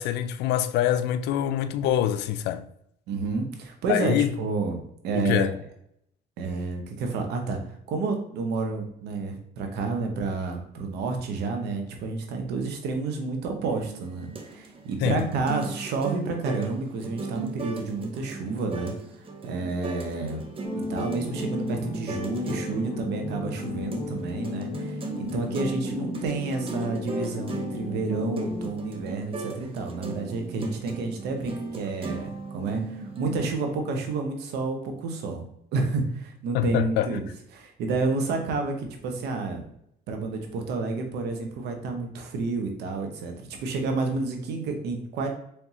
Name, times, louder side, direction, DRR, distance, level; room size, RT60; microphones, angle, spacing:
voice 1, 0.0-2.7 3.9-4.3 5.1-5.5 15.0-15.3 36.5-37.1, left 11 dB, 80° left, 0.4 m, -25 dB
voice 2, 3.1-5.6 6.4-7.6 7.9-18.9 19.4-20.4 20.9-35.4 35.7-39.7 40.1-45.3, right 3 dB, 80° right, 1.0 m, -30 dB
sound 1, 13.6-33.5, right 4 dB, 30° right, 0.7 m, -37 dB
sound 2, 20.6-28.7, left 3 dB, 20° left, 0.7 m, -35 dB
4.4 x 3.4 x 2.8 m
cardioid pair, 110°, 17 cm